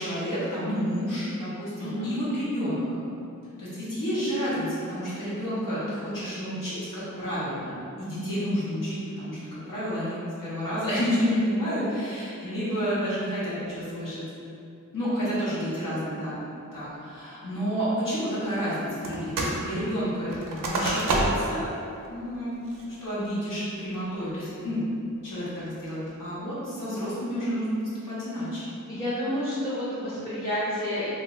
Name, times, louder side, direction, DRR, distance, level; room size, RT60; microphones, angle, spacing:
voice 1, 0.0-2.8 3.6-7.7 8.0-14.2 14.9-16.4 16.7-21.7 22.1-22.5 23.0-24.8 25.2-27.8 28.0-28.6, equal, 80° left, -10 dB, 1.1 m, -30 dB
voice 2, 1.8-2.1 28.9-31.1, equal, 30° left, -12 dB, 0.6 m, -30 dB
sound 1, 19.0-19.6 19.9-21.6 22.0-22.1 22.6-23.0 23.5-24.0, right 2 dB, 80° right, 0.5 m, -28 dB
2.8 x 2.3 x 3.0 m, 2.6 s
wide cardioid pair, 75°, 32 cm